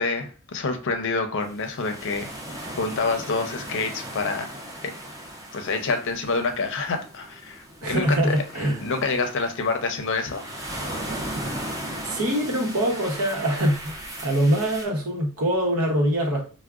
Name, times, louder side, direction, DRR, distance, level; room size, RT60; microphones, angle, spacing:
voice 1, 0.0-2.3 2.8-4.5 4.8-4.9 5.5-10.4, left 3 dB, 60° left, 0.5 m, -27 dB
sound 1, 1.4-14.9, right 1 dB, 15° right, 0.6 m, -37 dB
voice 2, 7.8-8.8 12.0-14.0 14.2-16.4, right 1 dB, 80° right, 0.9 m, -23 dB
4.6 x 2.1 x 2.4 m
head